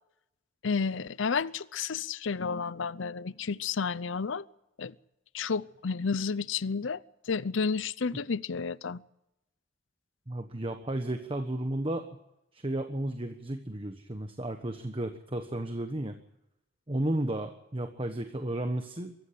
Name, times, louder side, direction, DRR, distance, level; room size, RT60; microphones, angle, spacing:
voice 1, 0.6-4.4 4.8-4.9 5.3-9.0, left 5 dB, 75° left, 0.6 m, -31 dB
voice 2, 10.3-12.0 12.5-16.2 16.9-19.1, right 1 dB, 30° right, 1.2 m, -33 dB
23.0 x 14.0 x 8.5 m
head